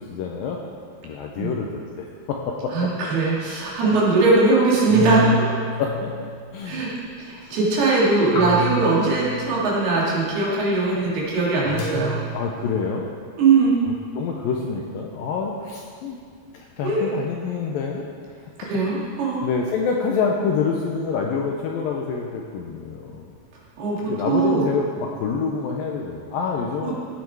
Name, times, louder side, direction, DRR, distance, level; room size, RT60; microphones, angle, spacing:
voice 1, 0.1-0.6 1.0-2.9 3.8-4.0 5.7-6.1 6.5-6.8 7.4-7.6 11.6-11.8 12.3-13.1 14.2-16.2 16.5-18.1 19.4-23.3 24.1-27.0, left 5 dB, 75° left, 0 dB, 2.1 m, -27 dB
voice 2, 2.7-5.5 6.6-6.9 7.2-12.2 13.4-13.9 16.8-17.1 18.6-19.5 23.8-24.6 26.8-26.9, right 3 dB, 70° right, -6 dB, 4.4 m, -20 dB
sound 1, 4.9-6.7 8.4-9.8 11.8-12.2, equal, 55° left, 3.0 m, -28 dB
16.5 x 8.4 x 4.7 m, 2.1 s
omnidirectional pair, 4.8 m